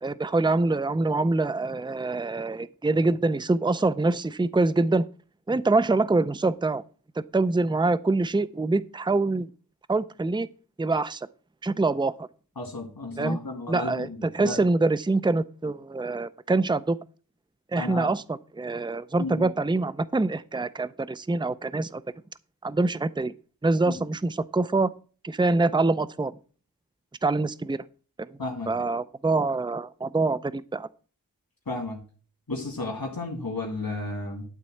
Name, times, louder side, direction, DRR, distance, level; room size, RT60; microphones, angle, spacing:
voice 1, 0.0-5.0 5.5-6.8 7.3-9.5 9.9-10.5 10.8-11.3 11.6-12.1 13.2-13.4 13.7-17.0 17.7-22.0 22.6-23.3 23.6-24.9 25.2-26.3 27.2-27.8 28.2-28.3 28.7-30.9, right 3 dB, 15° right, 15 dB, 0.5 m, -25 dB
voice 2, 12.6-14.6 17.8-18.1 19.2-19.5 23.9-24.0 28.4-28.9 31.7-32.0 32.5-34.5, left 2 dB, 90° left, -2 dB, 2.4 m, -33 dB
12.0 x 4.1 x 7.7 m, 0.38 s
wide cardioid pair, 45°, 34 cm